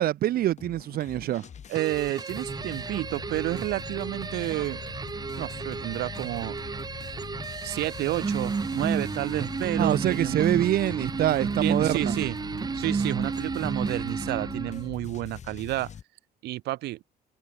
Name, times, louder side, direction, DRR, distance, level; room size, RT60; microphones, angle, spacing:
voice 1, 0.0-1.5 9.8-12.2, right 13 dB, 65° right, 1.2 m, -25 dB
sound 1, 0.6-16.0, left 8 dB, 45° left, 3.4 m, -42 dB
sound 2, 1.7-14.9, right 5 dB, 25° right, 1.1 m, -32 dB
voice 2, 1.7-4.8 5.4-6.6 7.6-10.5 11.6-12.4 12.7-15.9 16.4-17.0, right 17 dB, 80° right, 1.9 m, -30 dB
cardioid pair, 110°, 17 cm